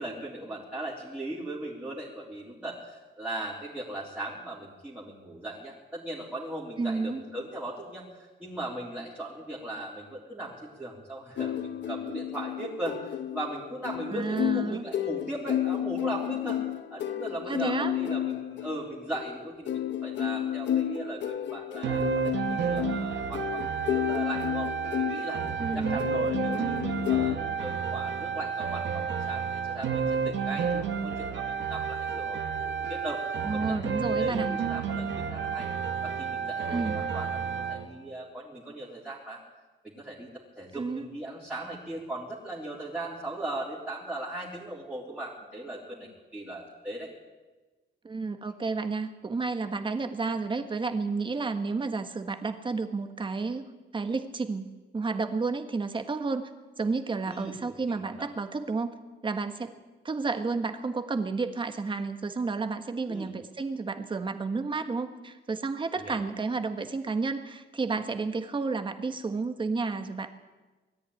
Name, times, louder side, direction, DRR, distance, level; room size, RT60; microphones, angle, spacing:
voice 1, 0.0-16.6 16.9-24.7 25.0-25.4 25.7-35.7 36.0-39.4 39.8-40.3 40.6-47.1 57.3-57.6 57.9-58.3 63.1-63.3 65.9-66.2, right 1 dB, 10° right, -7 dB, 3.5 m, -38 dB
voice 2, 6.8-7.2 14.1-14.8 17.5-17.9 25.6-26.0 33.4-34.5 36.7-37.0 40.7-41.1 48.0-53.7 53.9-56.5 56.8-58.9 59.2-59.7 60.0-70.4, right 4 dB, 25° right, 8 dB, 1.6 m, -31 dB
sound 1, 11.4-27.4, left 11 dB, 75° left, 1.0 m, -32 dB
sound 2, 21.8-37.9, right 6 dB, 80° right, 1.9 m, -31 dB
21.0 x 14.0 x 9.9 m, 1.2 s
wide cardioid pair, 165°, 19 cm